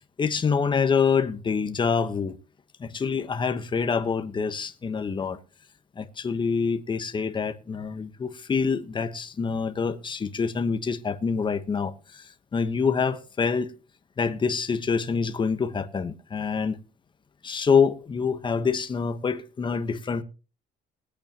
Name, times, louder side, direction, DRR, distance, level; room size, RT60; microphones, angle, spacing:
voice 1, 0.2-2.4 2.8-5.4 5.9-13.7 14.2-16.8 17.4-20.2, left 5 dB, 30° left, 1.2 m, -26 dB
20.5 x 8.4 x 3.0 m
cardioid pair, 110°, 17 cm